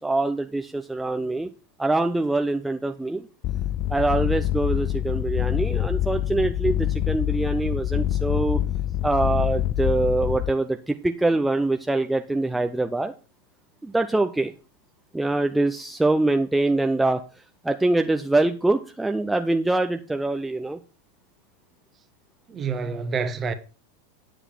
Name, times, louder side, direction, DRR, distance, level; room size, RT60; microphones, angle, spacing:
voice 1, 0.0-1.5 1.8-3.3 3.9-8.6 9.0-13.1 13.8-14.5 15.1-17.2 17.6-20.8, right 2 dB, 5° right, 0.7 m, -24 dB
sound 1, 3.4-10.5, left 12 dB, 35° left, 0.5 m, -25 dB
voice 2, 22.5-23.5, right 5 dB, 25° right, 1.4 m, -27 dB
9.9 x 8.0 x 4.5 m
figure-of-eight pair, 90°, 0 cm